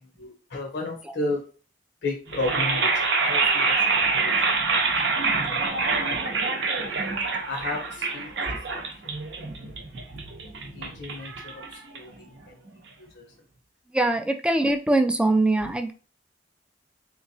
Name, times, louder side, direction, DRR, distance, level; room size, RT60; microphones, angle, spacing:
voice 1, 0.0-1.4 2.0-5.2 6.0-6.1 6.9-7.1 7.5-8.3 8.7-9.0 9.3-9.4 10.5-12.6 13.0-13.3, left 2 dB, 65° left, -1 dB, 0.7 m, -34 dB
sound 1, 2.3-12.3, right 4 dB, 75° right, 0.7 m, -26 dB
voice 2, 13.9-15.9, right 2 dB, 5° right, 6 dB, 0.3 m, -22 dB
3.5 x 3.0 x 2.6 m, 0.37 s
head